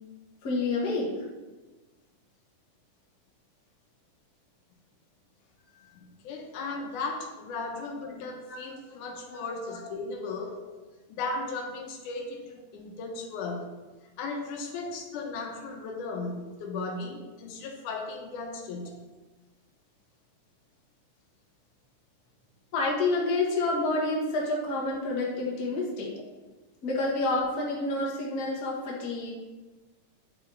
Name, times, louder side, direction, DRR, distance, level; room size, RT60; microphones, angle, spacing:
voice 1, 0.4-1.1 8.5-9.0 9.2-9.4 9.6-9.8 22.7-26.1 26.8-29.3, left 2 dB, 40° left, -4 dB, 1.5 m, -29 dB
voice 2, 5.7-10.6 11.1-13.7 14.2-19.0, left 3 dB, 80° left, 2 dB, 2.3 m, -36 dB
9.2 x 4.5 x 3.8 m, 1.2 s
omnidirectional pair, 3.6 m